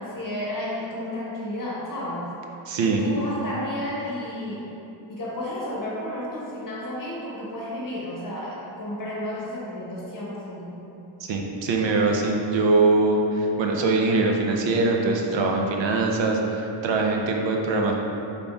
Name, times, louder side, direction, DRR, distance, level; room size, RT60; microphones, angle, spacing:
voice 1, 0.0-2.3 2.8-4.7 5.1-10.7, left 1 dB, 45° left, -6 dB, 1.1 m, -32 dB
voice 2, 2.7-3.0 11.2-17.9, right 3 dB, 70° right, 1 dB, 0.6 m, -22 dB
5.2 x 4.1 x 2.3 m, 2.9 s
wide cardioid pair, 125°, 47 cm